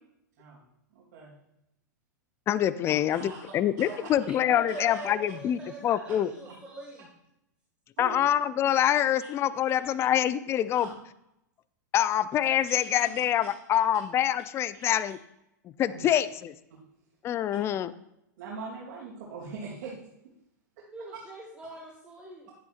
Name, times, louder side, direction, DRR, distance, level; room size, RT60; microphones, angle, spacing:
voice 1, 0.9-1.4 3.1-4.1 4.7-5.1 6.4-6.6 8.0-8.2 10.7-11.0 12.7-13.2 14.7-15.0 15.9-16.1 18.4-20.1 20.8-20.9, right 4 dB, 55° right, -5 dB, 2.8 m, -42 dB
voice 2, 2.5-6.3 8.0-10.9 11.9-15.2 15.8-16.5 17.2-17.9, left 11 dB, 25° left, 15 dB, 0.4 m, -25 dB
voice 3, 4.2-7.1 20.9-22.5, right 2 dB, 10° right, -3 dB, 1.7 m, -43 dB
11.0 x 9.3 x 2.5 m, 0.83 s
hypercardioid pair, 105°, 10 cm